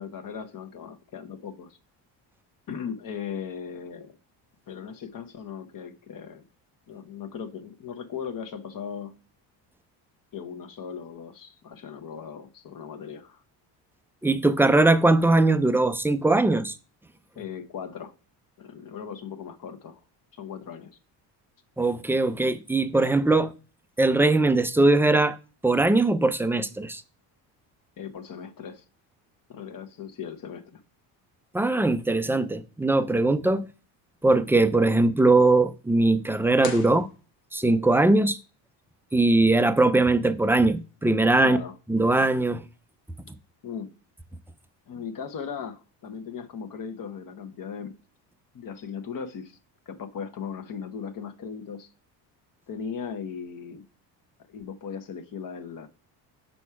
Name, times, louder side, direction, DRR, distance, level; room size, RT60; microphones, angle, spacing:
voice 1, 0.0-1.8 2.7-4.2 4.7-6.4 6.9-9.2 10.3-13.4 17.4-18.1 18.6-20.0 20.4-21.0 28.0-28.8 29.5-30.8 41.4-41.7 43.6-43.9 44.9-48.0 48.5-49.6 49.9-51.9 52.7-53.8 54.5-55.9, left 7 dB, 45° left, 1.1 m, -38 dB
voice 2, 14.2-16.7 21.8-23.5 24.0-25.4 25.6-27.0 31.5-33.7 34.2-37.1 37.5-38.4 39.1-41.6 41.9-42.6, right 2 dB, 5° right, 0.4 m, -21 dB
sound 1, 36.6-37.8, left 6 dB, 65° left, 1.4 m, -40 dB
5.8 x 4.2 x 4.7 m
supercardioid pair, 85°, 46 cm